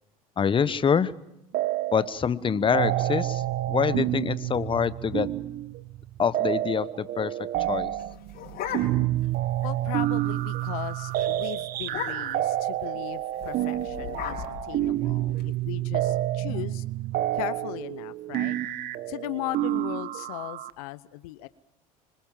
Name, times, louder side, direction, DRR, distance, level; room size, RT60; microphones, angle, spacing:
voice 1, 0.4-1.1 1.9-5.3 6.2-7.3 7.7-7.9, left 7 dB, 25° left, 16 dB, 1.1 m, -25 dB
sound 1, 1.5-2.2 2.4-20.7, right 14 dB, 55° right, 1.2 m, -29 dB
sound 2, 8.0-9.3 9.6-9.7 10.0-10.3 10.7-10.9 11.2-11.3 11.8-12.5 13.3-15.4, left 9 dB, 55° left, 4.5 m, -37 dB
voice 2, 9.6-16.8 17.3-18.6 19.1-21.5, left 17 dB, 75° left, 16 dB, 0.9 m, -37 dB
26.0 x 20.5 x 7.5 m, 0.83 s
hypercardioid pair, 80°, 19 cm